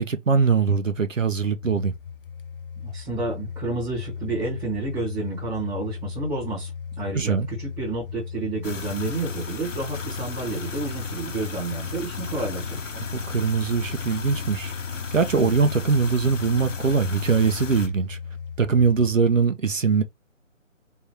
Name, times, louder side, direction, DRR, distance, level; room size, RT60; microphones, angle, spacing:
voice 1, 0.0-1.9 7.1-7.5 13.1-18.2 18.6-20.0, right 5 dB, 75° right, 1.0 m, -22 dB
sound 1, 1.6-19.1, left 6 dB, 45° left, 0.6 m, -36 dB
voice 2, 2.8-6.7 7.0-12.9, right 2 dB, 10° right, 1.1 m, -30 dB
sound 2, 8.6-17.9, left 5 dB, 70° left, 0.9 m, -36 dB
3.7 x 3.1 x 2.9 m
figure-of-eight pair, 145°, 39 cm